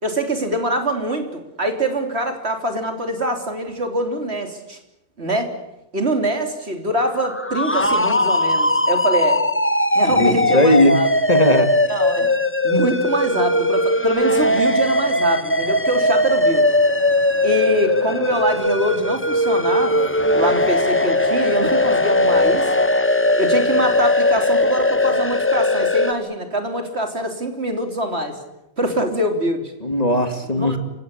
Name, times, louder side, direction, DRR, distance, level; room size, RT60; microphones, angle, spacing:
voice 1, 0.0-4.8 5.2-5.5 5.9-9.4 9.9-11.1 11.9-12.3 12.6-16.7 17.4-20.1 20.3-22.7 23.4-28.4 28.8-29.7 30.5-30.8, right 1 dB, 65° right, 5 dB, 3.6 m, -24 dB
sound 1, 7.1-26.1, left 1 dB, 10° left, 0.9 m, -19 dB
voice 2, 10.1-10.9 11.3-11.7 29.8-30.8, left 1 dB, 35° left, 8 dB, 2.2 m, -17 dB
Vehicle horn car horn honking / Traffic noise roadway noise, 14.4-21.5, equal, 45° right, 5.5 m, -41 dB
28.0 x 17.0 x 9.9 m, 0.91 s
omnidirectional pair, 1.2 m